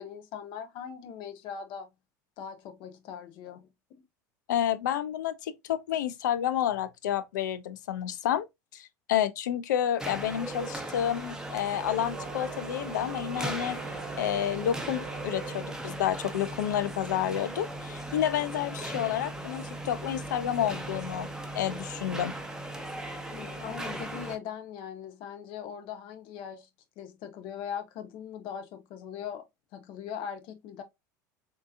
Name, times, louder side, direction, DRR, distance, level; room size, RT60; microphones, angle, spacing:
voice 1, 0.0-1.9 2.4-4.0 23.3-26.7 27.0-29.4 29.7-30.8, left 8 dB, 60° left, 0.8 m, -40 dB
voice 2, 4.5-8.5 8.7-13.8 14.2-21.3 21.5-22.3, left 10 dB, 85° left, 0.4 m, -30 dB
sound 1, 10.0-24.4, right 1 dB, 5° right, 0.8 m, -38 dB
Organ, 11.8-16.3, right 10 dB, 80° right, 0.4 m, -44 dB
3.6 x 2.8 x 2.4 m
hypercardioid pair, 85°, 10 cm